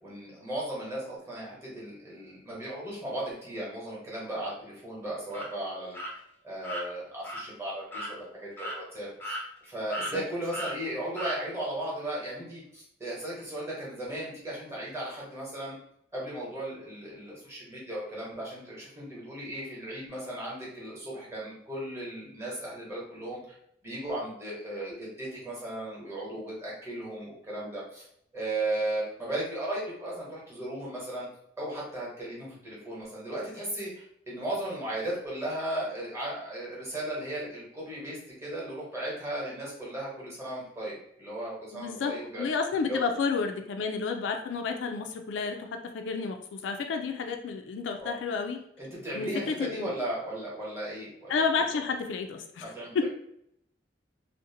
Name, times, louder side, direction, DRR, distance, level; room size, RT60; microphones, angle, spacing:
voice 1, 0.0-6.2 6.4-9.4 9.7-15.8 16.1-23.5 23.8-28.0 28.3-31.3 31.6-42.4 42.9-43.0 48.0-48.1 48.8-51.3 52.6-53.1, right 1 dB, 15° right, -6 dB, 0.9 m, -36 dB
sound 1, 5.3-5.5 5.9-6.1 6.6-6.8 7.2-7.4 7.9-8.1 8.6-8.8 9.2-9.7 9.9-10.1 10.5-10.7 11.2-11.4, equal, 10° left, 0.4 m, -35 dB
voice 2, 41.7-45.7 45.9-48.6 49.1-49.9 51.3-53.1, left 5 dB, 75° left, 5 dB, 0.3 m, -31 dB
2.6 x 2.1 x 2.7 m, 0.72 s
head